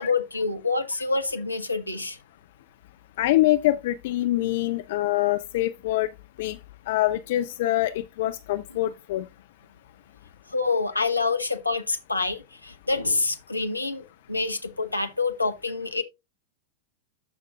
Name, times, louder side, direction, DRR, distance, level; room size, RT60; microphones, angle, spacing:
voice 1, 0.0-2.2 10.5-16.0, left 3 dB, 85° left, 0.9 m, -27 dB
voice 2, 3.2-6.1 6.4-6.6 6.9-9.3, left 15 dB, 55° left, 0.4 m, -24 dB
13.5 x 5.2 x 2.4 m
figure-of-eight pair, 90°, 0 cm